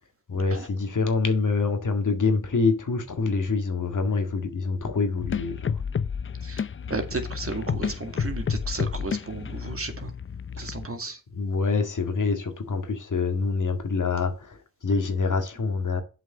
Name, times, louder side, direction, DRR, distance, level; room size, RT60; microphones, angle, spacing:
voice 1, 0.3-5.7 10.6-10.7 11.3-16.0, left 4 dB, 55° left, 2.0 m, -26 dB
sound 1, 5.2-10.9, left 7 dB, 35° left, 0.5 m, -31 dB
voice 2, 6.4-10.1 10.6-11.2, right 3 dB, 40° right, 2.1 m, -34 dB
8.0 x 5.1 x 6.7 m
cardioid pair, 45°, 36 cm